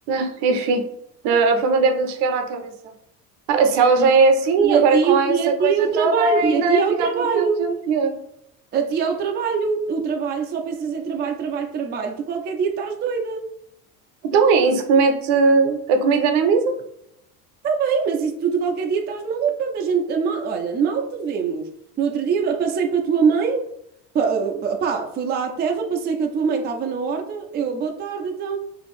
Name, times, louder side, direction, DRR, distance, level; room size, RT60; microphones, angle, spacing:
voice 1, 0.1-0.8 1.2-2.7 3.5-8.1 14.2-16.7, right 4 dB, 60° right, 6 dB, 0.7 m, -19 dB
voice 2, 3.5-4.1 4.6-7.7 8.7-13.5 17.6-21.7 22.0-23.7 24.1-28.6, right 6 dB, 25° right, 3 dB, 0.4 m, -23 dB
2.6 x 2.4 x 3.4 m, 0.75 s
hypercardioid pair, 75°, 46 cm